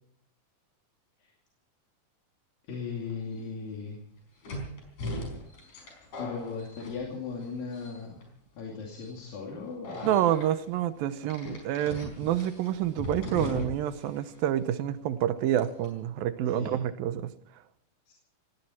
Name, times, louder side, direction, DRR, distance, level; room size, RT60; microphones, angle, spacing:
voice 1, 2.7-4.0 6.2-8.1 8.6-10.2 16.5-16.8 18.1-18.2, left 5 dB, 75° left, -1 dB, 4.4 m, -37 dB
sound 1, 3.1-3.2 4.4-7.4 7.7-8.2 8.9-9.1 9.8-10.5 11.3-14.0 14.3-14.4 15.6-15.9, left 2 dB, 60° left, 6.2 m, -38 dB
voice 2, 10.0-17.3, right 11 dB, 90° right, 13 dB, 2.7 m, -28 dB
18.5 x 17.5 x 4.4 m, 0.69 s
omnidirectional pair, 4.0 m